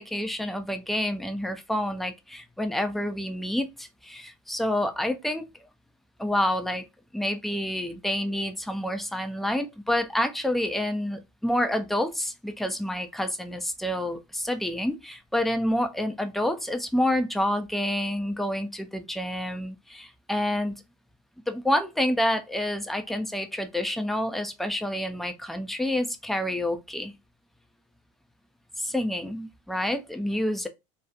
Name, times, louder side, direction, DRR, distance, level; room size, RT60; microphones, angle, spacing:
voice 1, 0.0-5.4 6.2-6.8 7.1-20.7 21.5-27.1 28.8-30.7, left 1 dB, ahead, 0.4 m, -28 dB
2.8 x 2.0 x 2.3 m
hypercardioid pair, 90°, 17 cm